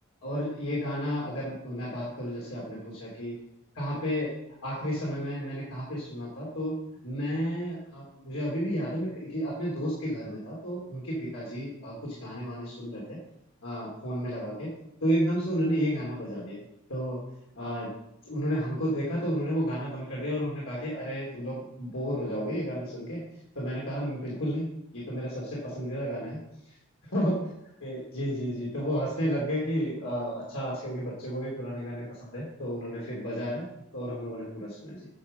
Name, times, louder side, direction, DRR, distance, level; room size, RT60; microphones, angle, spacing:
voice 1, 0.2-3.3 3.7-4.3 4.6-13.2 13.6-14.7 15.0-16.6 16.9-17.2 17.5-17.9 18.2-23.2 23.5-24.7 24.9-26.4 26.7-26.8 27.1-27.4 27.8-33.7 33.9-35.1, equal, 80° left, -6 dB, 3.0 m, -32 dB
9.9 x 5.6 x 6.5 m, 0.83 s
head